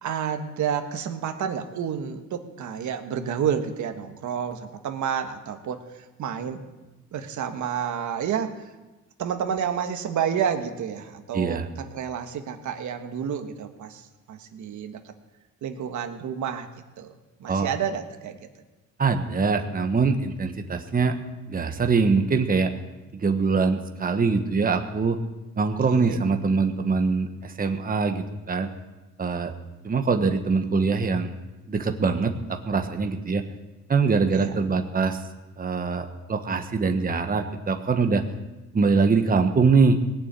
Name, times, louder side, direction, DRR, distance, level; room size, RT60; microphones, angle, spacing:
voice 1, 0.0-5.8 6.2-6.6 7.1-8.5 9.2-15.0 15.6-16.7 17.0-17.1 17.4-18.4 25.9-26.2 34.3-34.6, right 8 dB, 70° right, 6 dB, 1.5 m, -30 dB
voice 2, 11.3-11.7 17.5-17.7 19.0-21.1 21.5-22.7 23.2-25.2 25.6-28.7 29.2-29.5 29.8-31.3 31.7-33.4 33.9-35.2 35.6-38.2 38.7-40.0, right 4 dB, 30° right, 6 dB, 1.3 m, -23 dB
18.5 x 7.0 x 9.0 m, 1.1 s
cardioid pair, 90°, 30 cm